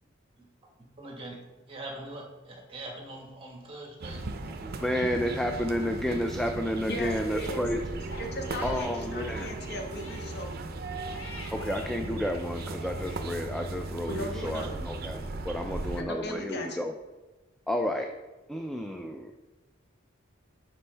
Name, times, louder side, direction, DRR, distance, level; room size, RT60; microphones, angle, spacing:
voice 1, 1.0-1.4 1.7-4.3, right 2 dB, 30° right, 0 dB, 1.4 m, -42 dB
sound 1, 4.0-16.0, right 2 dB, 50° right, 0.6 m, -37 dB
voice 2, 4.4-7.8 8.6-9.5 11.5-16.9 17.7-18.1 18.5-19.3, equal, ahead, 3 dB, 0.3 m, -31 dB
voice 3, 6.9-7.6 8.2-10.6 14.1-14.9 16.0-16.8, left 1 dB, 60° left, 2 dB, 1.3 m, -37 dB
Crying sobbing, 8.0-11.9 12.3-13.3, left 2 dB, 80° left, 1.3 m, -47 dB
9.8 x 5.2 x 3.3 m, 1.2 s
head